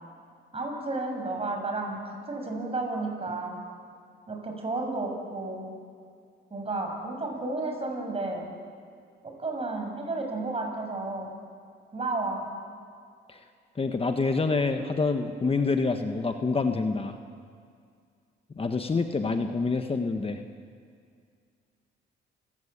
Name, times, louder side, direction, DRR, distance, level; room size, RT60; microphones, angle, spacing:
voice 1, 0.5-3.6 4.3-5.7 6.5-8.5 9.4-11.3 11.9-12.4 19.4-19.5, right 2 dB, 30° right, 2 dB, 6.9 m, -32 dB
voice 2, 13.8-17.2 18.6-20.4, left 4 dB, 30° left, 6 dB, 1.4 m, -27 dB
28.5 x 15.5 x 8.9 m, 2.2 s
cardioid pair, 90°, 20 cm